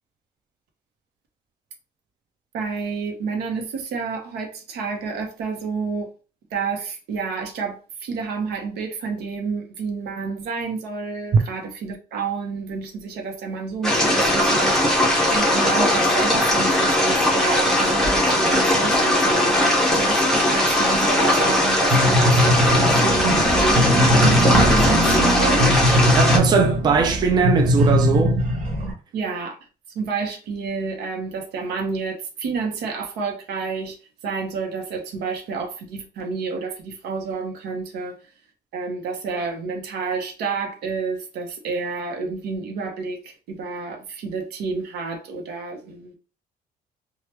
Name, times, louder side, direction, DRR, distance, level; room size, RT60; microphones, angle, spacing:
voice 1, 2.5-6.1 6.5-14.9 15.3-19.6 20.0-25.8 29.1-29.5 29.9-34.0 34.2-38.2 38.7-46.2, right 4 dB, 90° right, 0.9 m, -29 dB
sound 1, 13.8-26.4, left 1 dB, 5° left, 0.9 m, -19 dB
sound 2, 21.9-28.9, equal, 50° right, 0.8 m, -20 dB
voice 2, 26.1-28.4, right 5 dB, 25° right, 0.4 m, -20 dB
3.2 x 2.3 x 2.9 m
cardioid pair, 165°, 16 cm